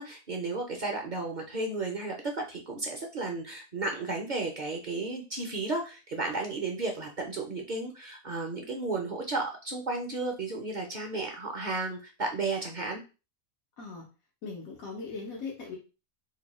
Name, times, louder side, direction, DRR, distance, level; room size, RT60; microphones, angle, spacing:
voice 1, 0.0-13.0, right 3 dB, 45° right, 2 dB, 0.6 m, -33 dB
voice 2, 14.4-15.8, left 4 dB, 85° left, -1 dB, 1.3 m, -39 dB
3.1 x 2.6 x 4.1 m, 0.31 s
omnidirectional pair, 1.4 m